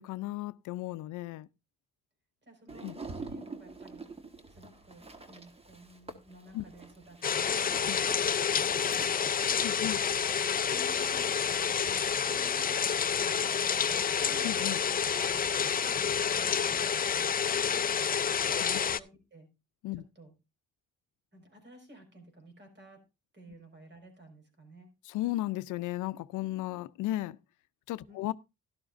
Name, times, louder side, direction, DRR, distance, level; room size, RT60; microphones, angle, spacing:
voice 1, 0.0-1.5 2.8-3.0 6.5-6.6 7.9-8.0 9.6-10.0 14.4-14.8 18.6-18.8 19.8-20.0 25.1-27.4 27.9-28.3, left 16 dB, 90° left, 0.6 m, -35 dB
voice 2, 2.4-4.1 4.5-10.1 10.4-14.5 15.3-15.4 16.0-18.1 18.5-19.5 20.1-20.3 21.3-23.0 23.3-24.9 28.1-28.3, right 1 dB, 35° right, 5.0 m, -54 dB
sound 1, 2.7-15.5, right 3 dB, 20° right, 1.5 m, -49 dB
sound 2, 7.2-19.0, left 7 dB, 30° left, 0.5 m, -29 dB
12.0 x 12.0 x 2.6 m
cardioid pair, 90°, 30 cm